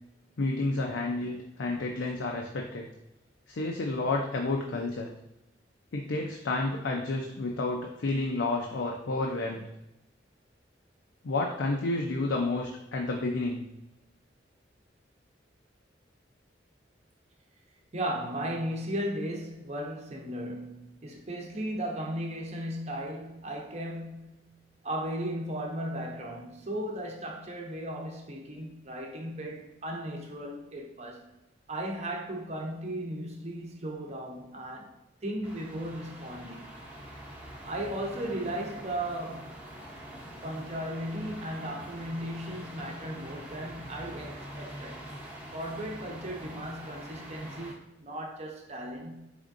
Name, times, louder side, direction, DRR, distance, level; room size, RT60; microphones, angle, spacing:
voice 1, 0.4-2.9 3.5-5.1 5.9-9.7 11.2-13.6, left 2 dB, 85° left, 0.5 m, -30 dB
voice 2, 17.9-24.4 24.8-31.2 31.7-35.0 35.2-36.7 37.6-39.7 40.4-45.2 45.5-49.4, right 1 dB, 35° right, 0.8 m, -36 dB
sound 1, 35.4-47.7, right 1 dB, 10° right, 0.8 m, -45 dB
5.0 x 3.5 x 2.5 m
head